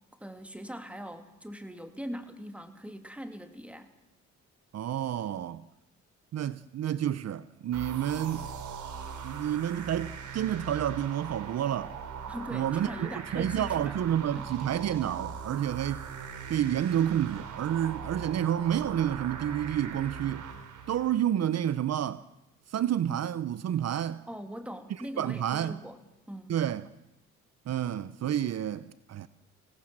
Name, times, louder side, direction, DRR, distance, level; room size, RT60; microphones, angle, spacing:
voice 1, 0.1-3.9 12.3-14.0 14.3-14.5 24.3-26.0 26.3-26.5, equal, 5° right, 2.6 m, -41 dB
voice 2, 4.7-5.7 6.3-8.5 9.2-11.9 12.5-16.0 16.5-20.5 20.9-22.2 22.7-24.2 24.9-25.8 26.5-26.9 27.7-29.3, right 10 dB, 60° right, 0.8 m, -29 dB
sound 1, 7.7-21.2, right 6 dB, 75° right, 3.0 m, -40 dB
25.5 x 18.0 x 7.4 m
cardioid pair, 90°, 30 cm